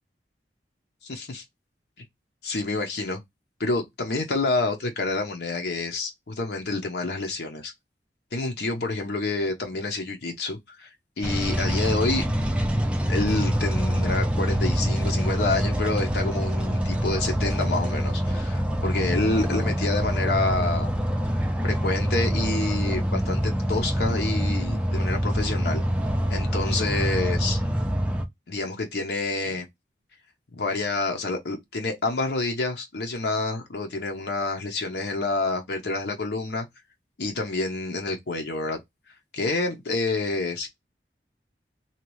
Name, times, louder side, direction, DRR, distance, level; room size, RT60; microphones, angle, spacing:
voice 1, 1.0-1.4 2.4-3.2 3.6-7.7 8.3-10.9 11.2-12.2 13.1-20.9 21.6-25.8 26.3-27.6 28.5-29.7 30.5-36.6 37.2-38.8 39.3-40.7, left 3 dB, 65° left, 0.7 m, -28 dB
sound 1, 11.2-28.2, equal, 5° right, 0.4 m, -25 dB
2.8 x 2.3 x 3.0 m
head